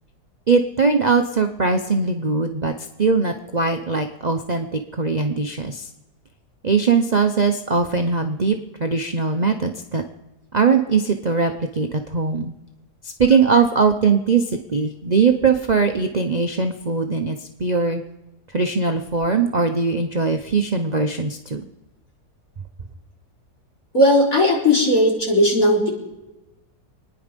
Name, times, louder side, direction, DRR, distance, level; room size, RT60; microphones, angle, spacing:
voice 1, 0.5-2.7 3.0-5.9 6.6-10.0 10.5-12.5 13.0-18.0 18.5-21.6, right 4 dB, 40° right, 5 dB, 0.7 m, -20 dB
voice 2, 23.9-25.9, left 1 dB, 55° left, -3 dB, 4.4 m, -16 dB
25.5 x 10.0 x 5.2 m, 0.98 s
omnidirectional pair, 1.7 m